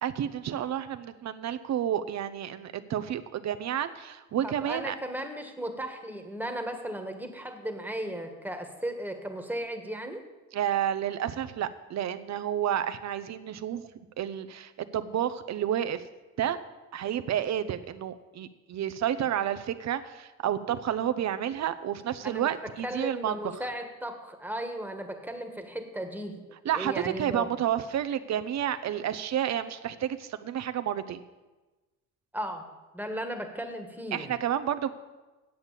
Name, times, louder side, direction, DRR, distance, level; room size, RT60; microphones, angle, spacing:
voice 1, 0.0-4.9 10.5-13.9 14.2-16.0 16.4-16.6 16.9-23.4 26.6-31.2 34.1-34.9, right 10 dB, 60° right, 12 dB, 0.8 m, -30 dB
voice 2, 4.4-10.2 22.2-22.5 22.8-26.4 26.7-27.5 32.3-32.6 32.9-34.3, right 1 dB, 5° right, 4 dB, 1.6 m, -36 dB
8.6 x 8.1 x 7.4 m, 1.1 s
cardioid pair, 90°, 30 cm